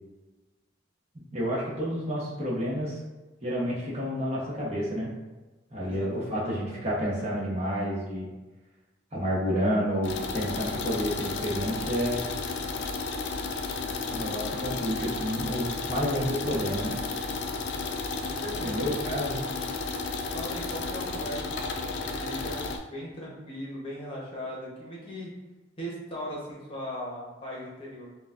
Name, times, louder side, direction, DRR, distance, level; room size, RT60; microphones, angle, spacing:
voice 1, 1.3-3.0 3.4-5.1 5.7-8.3 9.1-12.2 14.1-17.0 18.6-19.4, equal, 35° right, -6 dB, 1.1 m, -30 dB
voice 2, 5.8-6.8 18.3-19.2 20.3-25.3 25.8-28.1, equal, 30° left, -5 dB, 1.0 m, -39 dB
sound 1, 10.0-22.8, left 4 dB, 65° left, 0.5 m, -33 dB
6.5 x 2.3 x 2.5 m, 1.2 s
head